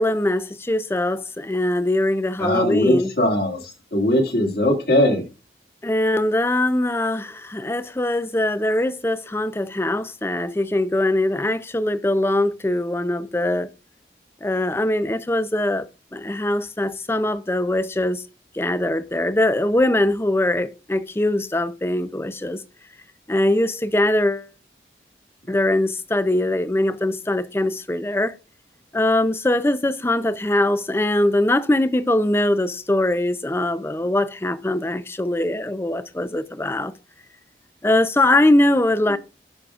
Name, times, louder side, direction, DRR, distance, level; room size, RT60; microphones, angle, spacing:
voice 1, 0.0-3.1 5.8-13.7 14.4-15.9 16.1-18.2 18.5-22.6 23.3-24.5 25.5-28.4 28.9-36.9 37.8-39.2, left 1 dB, 15° left, 0.5 m, -22 dB
voice 2, 2.4-5.3 39.1-39.2, left 1 dB, 60° left, 2.3 m, -20 dB
16.0 x 6.3 x 2.4 m
head